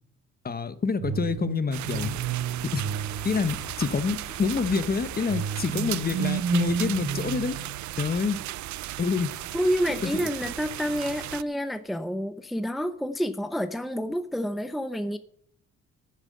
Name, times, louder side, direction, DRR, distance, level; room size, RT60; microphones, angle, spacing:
voice 1, 0.4-2.1 2.7-2.8 3.2-7.6 8.0-8.4 9.0-9.3 10.0-10.3, left 5 dB, 30° left, 13 dB, 1.0 m, -27 dB
sound 1, 1.0-4.1 5.3-8.2, right 7 dB, 50° right, 1.2 m, -31 dB
sound 2, 1.7-11.4, right 15 dB, 70° right, 0.5 m, -36 dB
sound 3, 1.8-7.0, left 6 dB, 50° left, 1.7 m, -48 dB
voice 2, 9.5-15.2, equal, ahead, 10 dB, 0.7 m, -28 dB
8.9 x 7.7 x 8.6 m, 0.63 s
cardioid pair, 90°, 30 cm